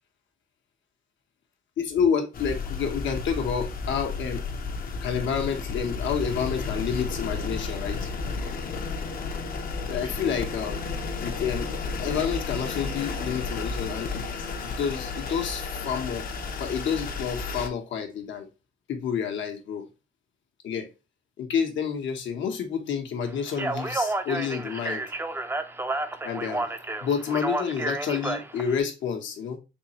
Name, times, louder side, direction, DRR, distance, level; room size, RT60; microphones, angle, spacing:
voice 1, 1.8-4.4 5.0-8.1 9.9-10.8 11.2-11.7 12.0-14.2 14.6-16.2 16.6-18.5 18.9-19.8 20.6-20.9 21.4-25.1 26.2-26.7 27.0-29.6, left 7 dB, 70° left, 4 dB, 0.9 m, -29 dB
sound 1, 2.3-17.7, left 4 dB, 45° left, 0.6 m, -32 dB
Speech, 23.5-28.8, right 2 dB, 10° right, 0.4 m, -31 dB
3.6 x 3.2 x 2.9 m, 0.28 s
cardioid pair, 90°, 20 cm